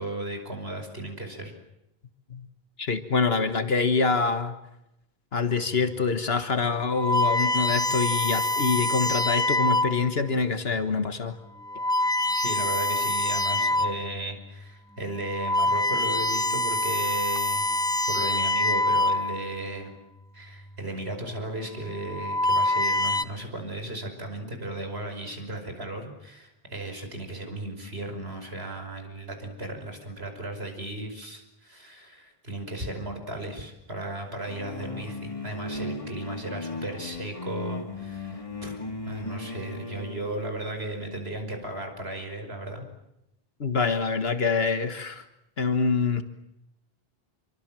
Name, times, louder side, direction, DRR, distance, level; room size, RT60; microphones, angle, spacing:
voice 1, 0.0-1.5 12.3-17.7 18.1-19.9 20.3-42.9, right 2 dB, 80° right, 5 dB, 5.8 m, -35 dB
voice 2, 2.8-4.5 5.3-11.4 43.6-45.2 45.6-46.2, left 4 dB, 75° left, 9 dB, 1.7 m, -25 dB
sound 1, 5.9-6.1 6.8-10.2 10.8-11.1 11.6-14.1 14.5-14.7 15.2-19.6 20.6-21.0 21.9-23.2, left 1 dB, 5° left, 0.8 m, -25 dB
sound 2, 34.5-40.3, left 2 dB, 35° left, 2.2 m, -36 dB
27.5 x 25.0 x 7.6 m, 0.87 s
omnidirectional pair, 1.0 m